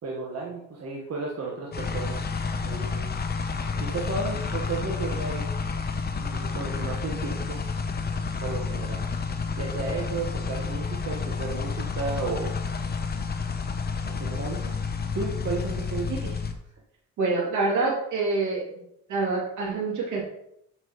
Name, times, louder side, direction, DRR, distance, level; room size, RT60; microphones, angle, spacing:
voice 1, 0.0-2.2 2.6-3.1 3.8-5.5 6.2-7.6 8.4-9.1 9.6-12.5 14.1-14.7 15.1-16.1, right 3 dB, 55° right, -3 dB, 1.5 m, -33 dB
sound 1, 1.7-16.5, left 5 dB, 30° left, 0.9 m, -30 dB
voice 2, 17.2-18.6 19.1-20.2, right 3 dB, 75° right, -3 dB, 2.9 m, -26 dB
7.6 x 6.0 x 3.1 m, 0.75 s
cardioid pair, 90°, 30 cm